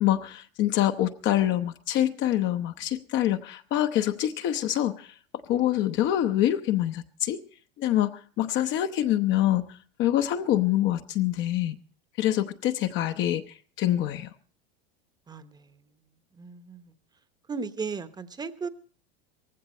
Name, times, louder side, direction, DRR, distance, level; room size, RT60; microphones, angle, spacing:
voice 1, 0.0-5.1 5.5-7.4 7.8-9.7 10.0-11.7 12.2-13.4 13.8-14.3, left 12 dB, 40° left, 0.9 m, -25 dB
voice 2, 15.3-15.8 16.3-16.9 17.5-18.7, right 5 dB, 15° right, 1.0 m, -36 dB
18.0 x 15.5 x 4.3 m
hypercardioid pair, 120°, 30 cm